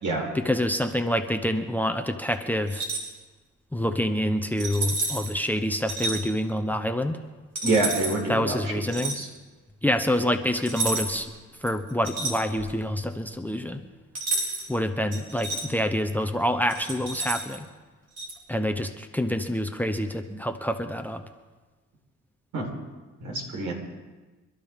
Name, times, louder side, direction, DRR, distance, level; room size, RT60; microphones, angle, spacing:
voice 1, 0.3-2.8 3.7-7.2 8.3-9.1 9.8-11.3 11.6-13.8 14.7-17.7 18.5-21.2, equal, 5° left, 8 dB, 0.9 m, -27 dB
sound 1, 2.7-3.1 4.6-5.3 5.9-6.2 7.6-8.2 8.9-9.2 10.7-11.3 11.6-12.8 14.2-14.7 15.1-15.6 16.7-17.6 18.2-18.3, right 3 dB, 55° right, 4.0 m, -30 dB
voice 2, 7.6-8.6 8.9-9.3 22.5-22.7 23.2-23.7, right 2 dB, 75° right, 0 dB, 4.5 m, -26 dB
27.5 x 12.0 x 3.7 m, 1.3 s
cardioid pair, 90°, 30 cm